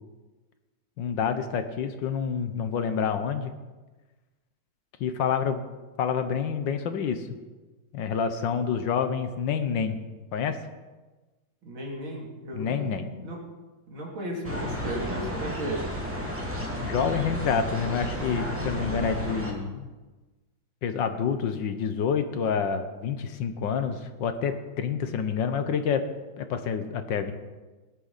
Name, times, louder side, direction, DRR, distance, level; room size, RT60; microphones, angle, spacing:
voice 1, 1.0-3.5 5.0-5.6 6.0-7.3 7.9-10.0 10.3-10.6 12.5-13.1 16.8-19.9 20.8-26.1 26.4-27.3, left 6 dB, 70° left, 9 dB, 1.5 m, -28 dB
voice 2, 11.6-13.4 13.9-15.8, right 1 dB, 75° right, -2 dB, 3.7 m, -35 dB
sound 1, 14.4-19.5, equal, 5° right, 2.0 m, -32 dB
17.5 x 11.5 x 4.1 m, 1.2 s
omnidirectional pair, 2.2 m